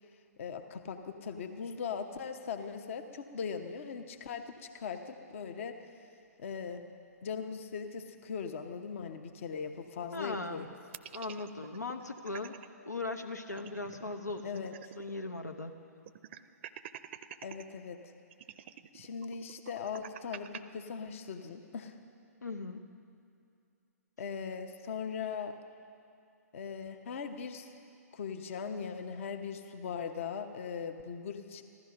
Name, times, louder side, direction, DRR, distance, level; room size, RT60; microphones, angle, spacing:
voice 1, 0.4-5.8 6.4-6.9 7.2-10.7 14.4-14.7 17.4-18.1 18.9-21.9 24.2-25.5 26.5-27.7 28.1-31.6, left 6 dB, 50° left, 7 dB, 0.9 m, -39 dB
voice 2, 10.1-10.7 11.1-12.6 12.8-14.6 15.0-15.8 22.4-22.8, left 3 dB, 90° left, 4 dB, 0.9 m, -39 dB
sound 1, 10.9-12.7 13.0-13.1 13.4-15.2 15.5-15.6 16.1-17.6 18.3-20.6, right 10 dB, 45° right, 0.5 m, -48 dB
15.0 x 13.0 x 5.8 m, 2.4 s
figure-of-eight pair, 120°, 9 cm